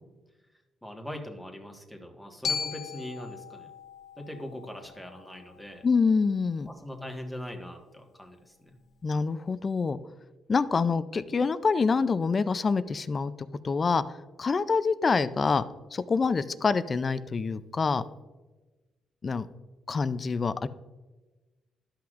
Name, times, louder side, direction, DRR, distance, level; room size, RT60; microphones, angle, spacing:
voice 1, 0.8-3.7 4.2-5.8 6.7-8.8, left 1 dB, ahead, 2 dB, 1.5 m, -41 dB
Glockenspiel, 2.4-6.6, left 6 dB, 70° left, 1.2 m, -38 dB
voice 2, 5.8-6.7 9.0-10.0 10.5-13.3 13.6-14.0 14.4-15.6 15.9-18.0 19.2-19.5 19.9-20.7, left 4 dB, 35° left, 14 dB, 0.4 m, -26 dB
12.5 x 5.8 x 2.5 m, 1.2 s
cardioid pair, 90°, 0 cm